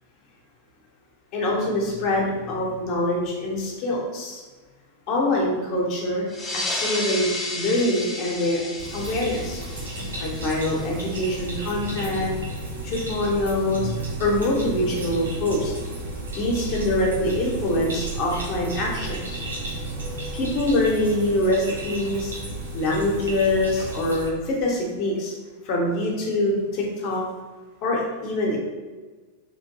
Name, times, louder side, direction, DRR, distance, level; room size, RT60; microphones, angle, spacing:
voice 1, 1.3-4.4 5.1-6.3 6.7-8.6 8.9-9.6 10.2-12.4 12.8-13.9 14.2-15.7 16.3-19.4 20.3-22.3 22.7-25.3 25.6-27.2 27.8-28.6, left 1 dB, 40° left, -2 dB, 0.8 m, -24 dB
sound 1, 6.3-11.4, left 2 dB, 15° left, 0.4 m, -32 dB
sound 2, 8.8-24.3, right 2 dB, 75° right, 0.7 m, -33 dB
3.0 x 2.5 x 2.7 m, 1.3 s
figure-of-eight pair, 90°, 0 cm